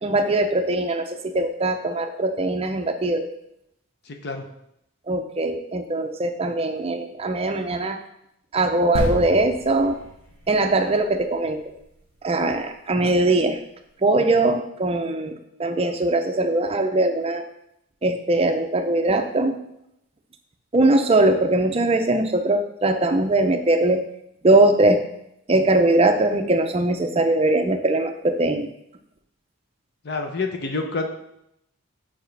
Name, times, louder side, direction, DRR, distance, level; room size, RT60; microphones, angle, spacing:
voice 1, 0.0-3.3 5.1-8.0 8.5-10.0 10.5-11.6 12.2-13.6 14.0-15.3 15.6-17.4 18.0-19.6 20.7-24.0 24.4-25.0 25.5-28.7, right 2 dB, 30° right, 6 dB, 0.5 m, -21 dB
voice 2, 4.1-4.4 30.0-31.1, left 3 dB, 50° left, 5 dB, 0.7 m, -28 dB
sound 1, 8.9-12.5 13.2-13.3, equal, 75° left, 1.8 m, -32 dB
7.0 x 5.0 x 3.3 m, 0.78 s
head